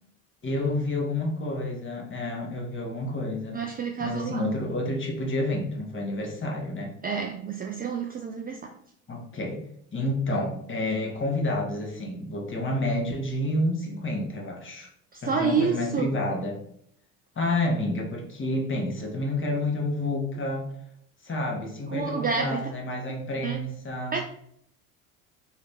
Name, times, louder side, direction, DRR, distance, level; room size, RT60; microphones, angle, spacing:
voice 1, 0.4-3.6 4.0-6.9 9.1-9.6 9.9-14.9 15.2-16.6 17.4-20.7 21.2-24.2, left 1 dB, 30° left, 1 dB, 1.1 m, -29 dB
voice 2, 3.5-4.5 7.0-8.7 15.1-16.1 21.9-22.7 23.4-23.6 24.1-24.2, right 6 dB, 25° right, 2 dB, 0.3 m, -28 dB
2.8 x 2.8 x 3.4 m, 0.69 s
hypercardioid pair, 70°, 40 cm